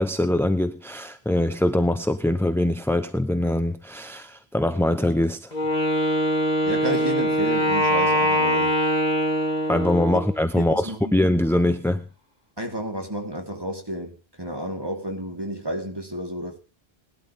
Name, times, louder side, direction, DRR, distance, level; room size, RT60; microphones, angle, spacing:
voice 1, 0.0-5.5 9.7-12.1, left 1 dB, 5° left, 0.8 m, -23 dB
Wind instrument woodwind instrument, 5.5-10.4, equal, 40° left, 3.2 m, -22 dB
voice 2, 6.7-8.8 10.6-11.2 12.6-16.6, right 1 dB, 20° right, 3.9 m, -31 dB
20.0 x 12.5 x 3.6 m
omnidirectional pair, 1.1 m